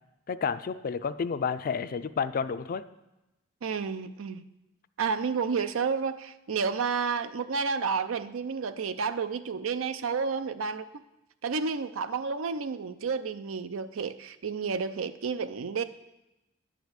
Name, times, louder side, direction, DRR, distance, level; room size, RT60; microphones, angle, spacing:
voice 1, 0.3-2.8, left 6 dB, 45° left, 0.4 m, -30 dB
voice 2, 3.6-4.5 5.0-10.9 11.4-15.8, right 5 dB, 85° right, 0.5 m, -31 dB
10.5 x 5.0 x 8.1 m
head